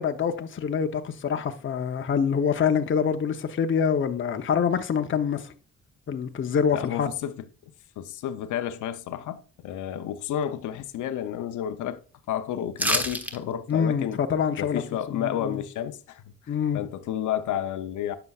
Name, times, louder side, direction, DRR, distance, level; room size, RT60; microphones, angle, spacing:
voice 1, 0.0-5.5 6.1-7.1 13.7-14.8 15.1-15.6 16.5-16.8, left 7 dB, 40° left, 0.8 m, -25 dB
voice 2, 6.7-7.3 8.0-12.0 12.3-14.2 14.6-18.1, left 10 dB, 80° left, 0.7 m, -31 dB
sound 1, 12.8-13.4 13.7-13.8, equal, 5° right, 1.2 m, -26 dB
9.5 x 6.9 x 2.4 m
cardioid pair, 90°, 30 cm